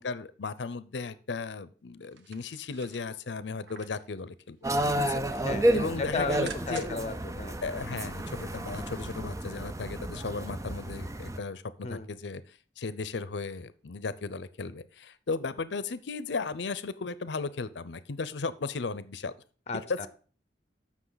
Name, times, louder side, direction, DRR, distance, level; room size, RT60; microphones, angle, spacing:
voice 1, 0.0-4.6 4.9-5.4 5.7-6.9 7.6-19.3 19.7-20.0, left 4 dB, 75° left, 16 dB, 0.6 m, -36 dB
sound 1, 2.0-4.1 4.5-5.0 5.3-7.1 7.5-7.6, right 5 dB, 85° right, 1.0 m, -48 dB
sound 2, 4.6-11.4, right 1 dB, 15° right, 0.5 m, -31 dB
voice 2, 5.4-6.3 6.7-7.6 11.8-12.1 19.7-19.8, left 3 dB, 40° left, 12 dB, 0.9 m, -34 dB
13.5 x 6.0 x 4.0 m, 0.40 s
head